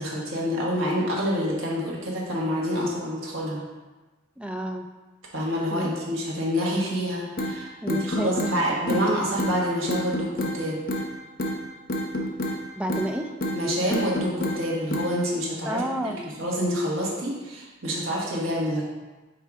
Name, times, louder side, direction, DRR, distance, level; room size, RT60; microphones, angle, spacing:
voice 1, 0.0-3.6 5.3-10.8 13.5-18.9, equal, 90° right, -4 dB, 1.4 m, -27 dB
voice 2, 4.4-4.9 5.7-5.9 7.8-8.6 8.9-9.0 12.8-13.3 15.6-16.3, equal, 5° right, 4 dB, 0.3 m, -30 dB
sound 1, 7.4-7.5 7.9-8.5 8.9-9.0 9.4-9.5 9.9-10.6 10.9-11.1 11.4-11.6 11.9-12.6 12.9-13.1 13.4-13.6 13.9-14.6 14.9-15.1, equal, 50° left, 0.7 m, -28 dB
5.6 x 3.8 x 4.8 m, 1.2 s
head